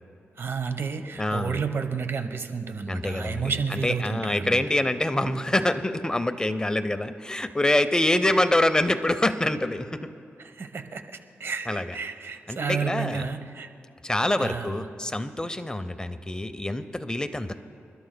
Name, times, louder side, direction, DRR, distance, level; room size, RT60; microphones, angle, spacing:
voice 1, 0.4-4.6 10.4-11.0 11.4-13.7 14.4-14.9, right 5 dB, 60° right, 8 dB, 0.9 m, -31 dB
voice 2, 1.2-1.6 2.9-10.1 11.7-11.8 12.5-13.2 14.0-17.5, left 1 dB, 15° left, 11 dB, 0.6 m, -25 dB
27.5 x 12.5 x 2.2 m, 2.6 s
cardioid pair, 70°, 5 cm